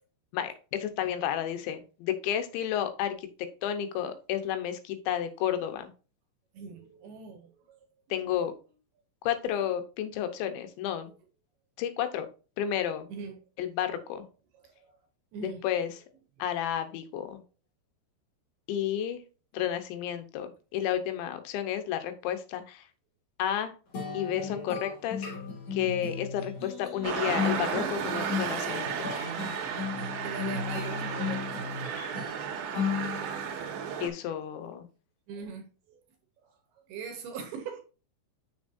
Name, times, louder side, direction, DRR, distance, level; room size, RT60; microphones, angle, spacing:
voice 1, 0.3-3.3 3.6-5.9 8.1-8.5 9.2-11.1 11.8-12.3 12.6-13.1 13.6-14.2 15.4-15.9 16.4-17.4 18.7-19.2 19.5-22.8 23.4-23.7 24.1-25.3 25.7-29.1 34.0-34.9, left 10 dB, 80° left, 3.2 m, -31 dB
voice 2, 6.5-8.2 13.1-13.4 14.6-14.9 15.3-15.6 30.2-31.6 35.3-36.0 36.4-36.5 36.9-37.8, right 6 dB, 70° right, 2.7 m, -42 dB
sound 1, 23.9-33.6, left 6 dB, 40° left, 2.1 m, -35 dB
sound 2, 27.0-34.1, right 7 dB, 90° right, 3.6 m, -34 dB
7.1 x 7.1 x 2.6 m
omnidirectional pair, 5.3 m